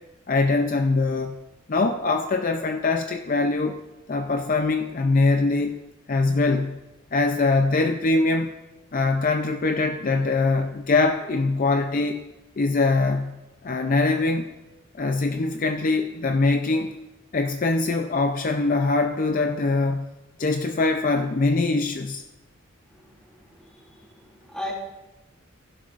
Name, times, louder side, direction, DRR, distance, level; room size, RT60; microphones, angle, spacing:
voice 1, 0.3-1.4 1.7-3.8 4.1-5.8 6.1-6.8 7.1-8.5 8.9-12.2 12.6-14.5 15.0-16.9 17.3-20.1 20.4-22.2, left 3 dB, 40° left, 5 dB, 0.5 m, -23 dB
voice 2, 23.5-24.1 24.4-24.7, left 1 dB, 5° left, -3 dB, 2.5 m, -36 dB
15.5 x 11.0 x 2.5 m, 1.0 s
head